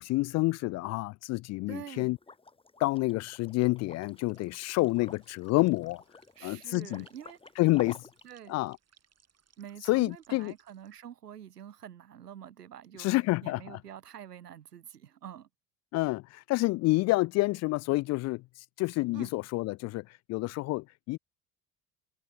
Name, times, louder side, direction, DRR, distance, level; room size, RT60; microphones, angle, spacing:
voice 1, 0.0-2.2 2.8-6.0 6.4-7.0 7.6-8.0 8.5-8.8 9.9-10.5 13.0-13.8 15.9-18.4 18.8-21.2, left 20 dB, 35° left, 0.4 m, -28 dB
voice 2, 1.7-2.1 6.4-7.4 8.2-8.6 9.6-13.1 13.4-15.5 19.1-19.3, right 10 dB, 80° right, 3.6 m, -46 dB
Liquid, 2.2-8.3, left 3 dB, 10° left, 1.4 m, -51 dB
sound 1, 4.1-11.0, right 7 dB, 35° right, 7.8 m, -66 dB
figure-of-eight pair, 60°, 46 cm